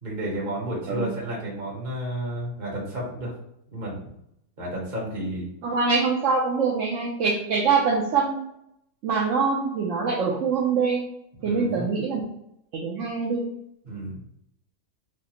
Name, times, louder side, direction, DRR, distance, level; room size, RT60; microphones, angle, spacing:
voice 1, 0.0-3.3 3.7-4.1 4.6-5.5 11.4-11.9 13.8-14.2, right 1 dB, 30° right, -5 dB, 1.2 m, -32 dB
voice 2, 5.6-8.5 9.0-11.0 11.4-12.3 12.7-13.4, right 4 dB, 70° right, -3 dB, 0.7 m, -24 dB
4.8 x 2.0 x 2.9 m, 0.77 s
omnidirectional pair, 1.8 m